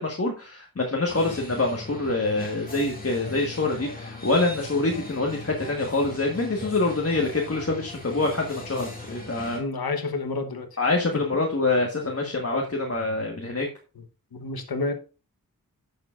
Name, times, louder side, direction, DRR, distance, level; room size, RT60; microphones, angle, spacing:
voice 1, 0.0-9.6 10.8-13.7, left 2 dB, 40° left, 1.4 m, -26 dB
sound 1, 1.1-9.6, left 2 dB, 25° left, 2.2 m, -39 dB
voice 2, 9.5-10.8 11.1-11.4 12.5-12.7 13.9-14.0 14.3-14.9, left 3 dB, 85° left, 1.1 m, -30 dB
11.0 x 6.7 x 2.5 m
wide cardioid pair, 60°, 36 cm